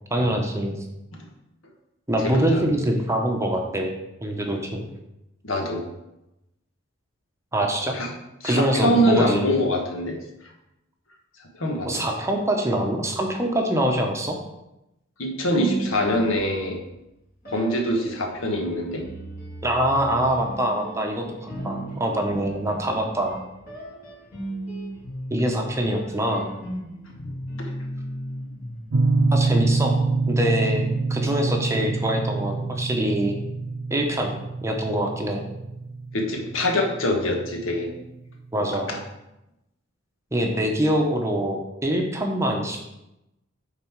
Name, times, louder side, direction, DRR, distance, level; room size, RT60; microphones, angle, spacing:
voice 1, 0.1-0.8 2.1-3.9 4.2-4.8 7.5-8.0 8.4-9.5 11.8-14.4 19.6-23.4 25.3-26.5 29.3-30.0 30.3-33.4 33.9-34.3 34.6-35.4 38.5-38.9 40.3-42.9, right 1 dB, 15° right, 2 dB, 0.9 m, -24 dB
voice 2, 2.2-2.6 5.4-5.8 7.9-8.1 8.4-10.2 11.6-12.1 15.2-16.8 17.5-19.0 27.2-27.3 27.6-27.7 36.1-37.9 38.9-39.0, equal, 75° left, 1 dB, 1.4 m, -24 dB
sound 1, 15.4-16.9 17.4-29.7, right 1 dB, 45° left, 3.1 m, -36 dB
sound 2, 28.9-37.6, right 3 dB, 65° right, 0.7 m, -25 dB
9.3 x 4.1 x 4.6 m, 0.91 s
head